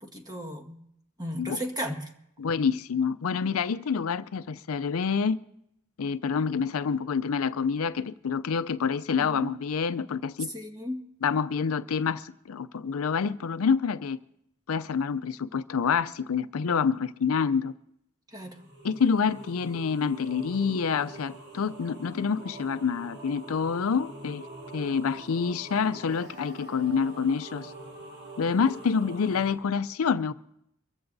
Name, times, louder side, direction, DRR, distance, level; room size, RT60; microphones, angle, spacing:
voice 1, 0.0-0.8 1.2-2.0 9.2-9.5 10.5-11.1 18.3-18.6, equal, 20° right, 1.6 m, -35 dB
voice 2, 2.4-5.4 6.0-10.5 11.2-14.2 14.7-17.7 18.8-24.4 24.7-27.7 28.4-30.3, left 6 dB, 80° left, 0.5 m, -27 dB
sound 1, 18.5-29.5, right 2 dB, 55° right, 4.4 m, -45 dB
24.0 x 15.0 x 2.7 m
head